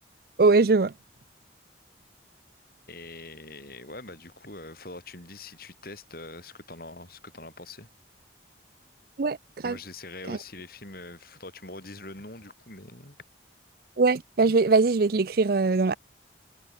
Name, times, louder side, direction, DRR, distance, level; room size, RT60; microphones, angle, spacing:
voice 1, 0.4-0.9 9.2-9.4 9.6-9.8 10.3-10.4 14.0-15.9, right 3 dB, 50° right, 0.5 m, -21 dB
voice 2, 2.9-7.9 9.6-13.2, left 2 dB, 50° left, 6.4 m, -43 dB
head